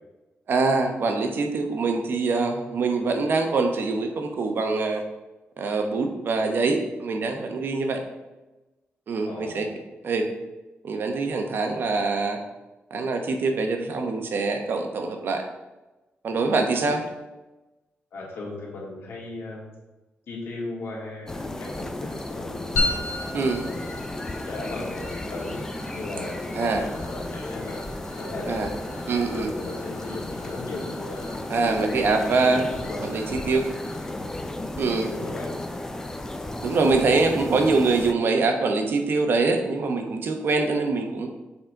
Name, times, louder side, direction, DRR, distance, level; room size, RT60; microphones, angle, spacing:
voice 1, 0.5-5.0 5.6-8.0 9.1-9.7 10.0-10.3 10.8-12.4 12.9-15.4 16.2-17.0 23.3-23.6 26.6-26.8 28.5-28.7 29.1-29.5 31.5-32.7 33.0-33.6 34.8-35.1 36.6-41.3, right 3 dB, 60° right, 4 dB, 0.8 m, -24 dB
voice 2, 9.2-9.7 16.7-17.0 18.1-19.7 20.3-22.7 23.3-23.9 24.5-25.6 25.9-27.8 28.2-28.8 29.3-31.3 32.2-33.4 34.1-34.3 35.1-35.5, left 2 dB, 70° left, -3 dB, 2.0 m, -37 dB
sound 1, 21.3-38.1, left 1 dB, 10° left, 0.5 m, -34 dB
sound 2, 22.8-37.4, left 2 dB, 85° left, 1.5 m, -37 dB
7.2 x 3.9 x 4.5 m, 1.1 s
wide cardioid pair, 140°, 4 cm